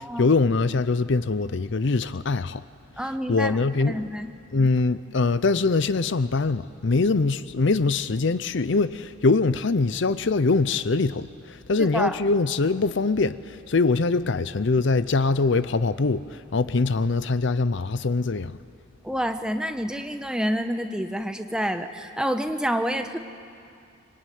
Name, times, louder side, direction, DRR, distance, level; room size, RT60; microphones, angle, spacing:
voice 1, 0.0-2.6 3.3-4.0 4.5-18.6, left 3 dB, 60° left, 0.6 m, -23 dB
voice 2, 3.0-3.5 3.9-4.3 11.8-12.2 19.0-23.2, equal, 5° right, 1.0 m, -28 dB
25.0 x 24.0 x 9.4 m
head